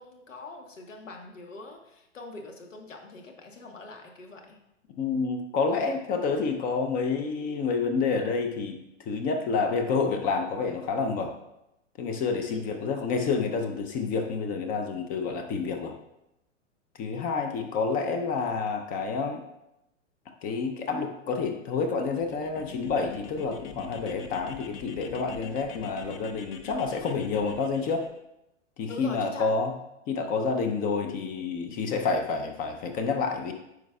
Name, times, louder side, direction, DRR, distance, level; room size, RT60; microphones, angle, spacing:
voice 1, 0.0-4.6 12.5-12.8 28.9-29.5, left 3 dB, 85° left, 2 dB, 1.4 m, -43 dB
voice 2, 5.0-8.8 9.1-11.3 12.0-15.9 17.0-19.4 20.4-28.1 28.8-29.7 30.1-33.5, left 4 dB, 25° left, 6 dB, 0.5 m, -28 dB
sound 1, 22.0-28.1, left 6 dB, 50° left, 0.9 m, -44 dB
9.2 x 5.3 x 2.3 m, 0.85 s
hypercardioid pair, 115°, 37 cm